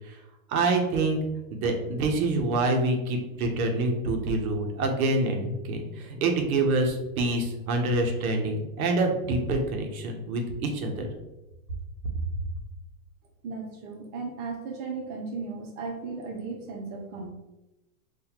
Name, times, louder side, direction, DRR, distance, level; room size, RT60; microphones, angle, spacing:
voice 1, 0.5-1.2 1.5-11.1, right 2 dB, 70° right, 3 dB, 0.9 m, -26 dB
voice 2, 13.4-17.3, right 4 dB, 45° right, 1 dB, 0.9 m, -36 dB
4.0 x 2.6 x 2.9 m, 1.0 s
supercardioid pair, 145°, 44 cm